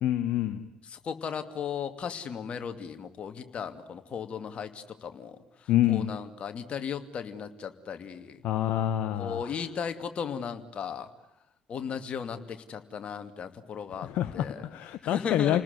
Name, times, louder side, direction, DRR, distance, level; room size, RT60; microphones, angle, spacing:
voice 1, 0.0-0.6 5.7-6.1 8.4-9.5 14.0-15.6, left 12 dB, 60° left, 10 dB, 1.3 m, -27 dB
voice 2, 0.9-8.4 9.2-11.1 11.7-14.7 15.0-15.6, left 7 dB, 45° left, 8 dB, 2.5 m, -36 dB
29.5 x 20.0 x 9.7 m, 0.83 s
hypercardioid pair, 55°, 3 cm